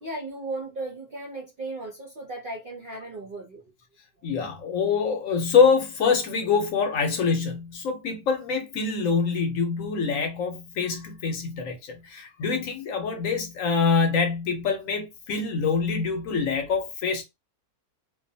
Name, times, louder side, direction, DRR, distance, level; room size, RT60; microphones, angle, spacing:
voice 1, 0.0-3.6, right 2 dB, 55° right, 0.6 m, -36 dB
voice 2, 4.2-17.2, left 5 dB, 65° left, 1.0 m, -25 dB
2.5 x 2.3 x 2.6 m
omnidirectional pair, 1.6 m